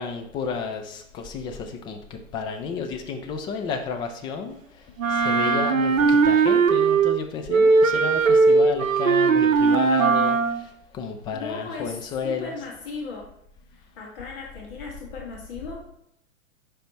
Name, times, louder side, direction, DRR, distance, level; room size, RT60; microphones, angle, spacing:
voice 1, 0.0-4.6 5.1-10.7 10.9-12.5, left 5 dB, 10° left, 5 dB, 0.4 m, -31 dB
Wind instrument woodwind instrument, 5.0-7.2 7.5-10.6, right 4 dB, 75° right, 0.7 m, -19 dB
voice 2, 11.3-13.3 13.7-15.8, left 4 dB, 45° left, -2 dB, 1.9 m, -37 dB
10.0 x 3.5 x 4.2 m, 0.76 s
figure-of-eight pair, 105°, 40 cm